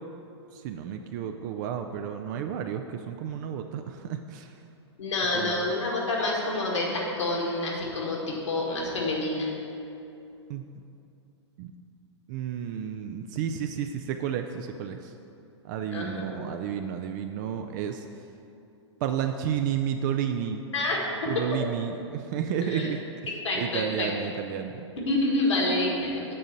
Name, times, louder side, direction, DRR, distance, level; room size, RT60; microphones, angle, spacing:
voice 1, 0.5-4.5 5.3-5.7 10.5-10.7 11.6-11.7 12.3-15.1 15.6-18.0 19.0-20.7 21.3-23.0 23.5-24.9, right 8 dB, 40° right, 6 dB, 0.4 m, -31 dB
voice 2, 5.0-9.5 15.9-16.6 20.7-21.6 22.5-22.9 23.4-24.1 25.0-26.1, left 2 dB, 75° left, -2 dB, 1.9 m, -28 dB
7.6 x 3.9 x 6.7 m, 2.7 s
hypercardioid pair, 110°, 15 cm